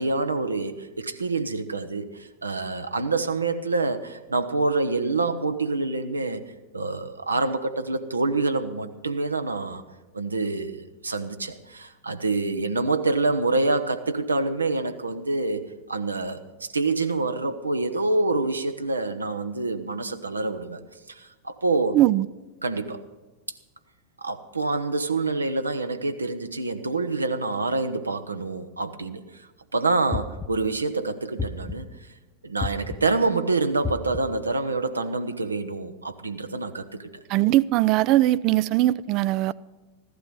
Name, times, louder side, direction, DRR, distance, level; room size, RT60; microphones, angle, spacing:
voice 1, 0.0-6.4 6.7-9.8 10.1-20.8 21.1-22.0 22.6-23.0 24.2-29.4 29.7-31.9 32.4-37.0, right 3 dB, 80° right, 0.9 m, -26 dB
voice 2, 21.9-22.3 37.3-39.5, right 15 dB, 40° right, 0.4 m, -20 dB
sound 1, 30.1-30.8 31.4-32.0 32.6-33.2 33.8-34.5, left 4 dB, 15° left, 0.9 m, -32 dB
15.0 x 12.0 x 5.4 m
figure-of-eight pair, 90°, 0 cm